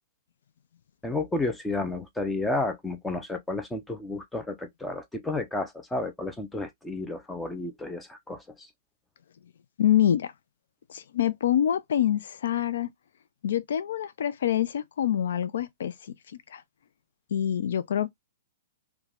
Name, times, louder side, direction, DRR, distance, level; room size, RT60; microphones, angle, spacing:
voice 1, 1.0-8.7, left 2 dB, 5° left, 0.4 m, -31 dB
voice 2, 9.8-10.3 10.9-12.9 13.4-16.6 17.3-18.1, left 10 dB, 70° left, 0.4 m, -26 dB
3.2 x 2.2 x 2.4 m
hypercardioid pair, 165°, 0 cm